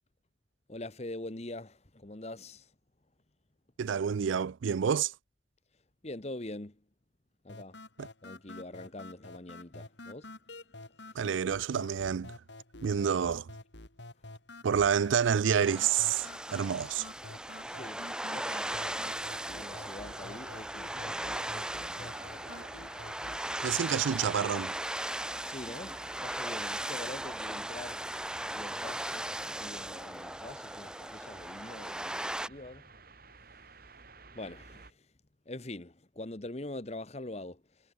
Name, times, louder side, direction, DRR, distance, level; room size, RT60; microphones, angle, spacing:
voice 1, 0.7-2.6 6.0-6.7 7.4-7.8 8.2-10.3 17.6-22.5 23.2-23.4 25.4-28.0 28.5-29.3 29.6-32.8 34.3-34.9 35.5-37.6, left 2 dB, 35° left, 1.1 m, -44 dB
voice 2, 3.8-5.1 8.0-8.1 11.1-12.3 12.8-13.5 14.6-17.1 23.6-24.7, right 7 dB, 80° right, 0.4 m, -28 dB
sound 1, 7.5-23.5, left 2 dB, 65° left, 4.2 m, -49 dB
sound 2, 15.6-32.5, right 1 dB, 5° right, 0.6 m, -38 dB
sound 3, 18.7-34.9, right 3 dB, 50° right, 3.2 m, -54 dB
head